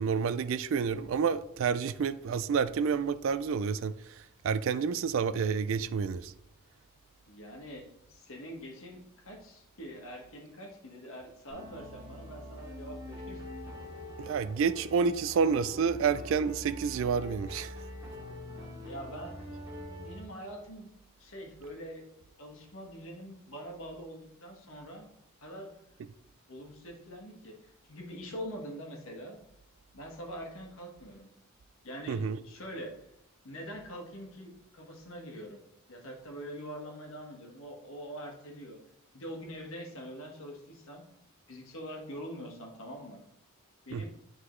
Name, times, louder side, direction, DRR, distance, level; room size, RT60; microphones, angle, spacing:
voice 1, 0.0-6.3 14.2-17.8 32.1-32.4 43.9-44.0, right 6 dB, 60° right, 0.3 m, -29 dB
voice 2, 7.3-13.4 18.5-19.4 20.0-20.9 21.2-22.0 22.4-25.1 25.4-25.7 26.5-29.4 29.9-31.3 31.8-32.9 33.4-35.6 35.9-38.8 39.1-41.0 41.5-43.2 43.8-44.1, equal, 65° left, 1.5 m, -44 dB
sound 1, 11.5-20.2, left 1 dB, 15° right, 2.2 m, -44 dB
9.8 x 3.9 x 3.1 m
head